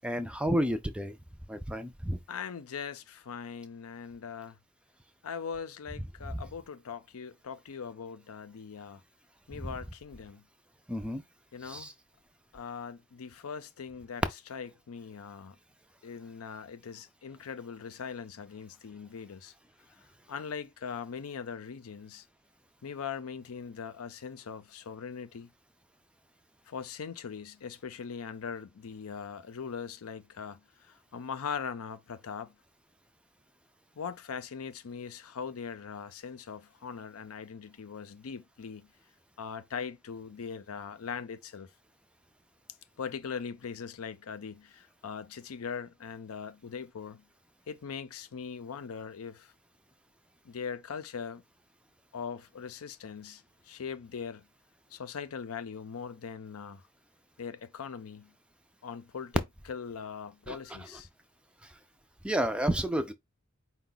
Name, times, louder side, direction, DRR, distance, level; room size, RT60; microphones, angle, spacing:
voice 1, 0.0-1.1 1.5-2.2 10.9-11.2 11.7-11.9 60.5-60.6 62.2-63.1, equal, 5° right, 0.3 m, -30 dB
voice 2, 2.3-4.6 5.2-9.0 9.5-10.5 11.5-11.9 12.5-14.2 14.5-15.6 16.0-19.5 20.3-22.2 22.8-25.5 26.7-32.6 34.0-38.9 39.4-41.7 43.0-47.3 47.7-49.5 50.4-51.4 52.1-54.5 54.9-56.8 57.4-58.3 58.8-59.4 59.7-61.1, left 6 dB, 90° left, 0.5 m, -41 dB
4.6 x 2.2 x 3.8 m
head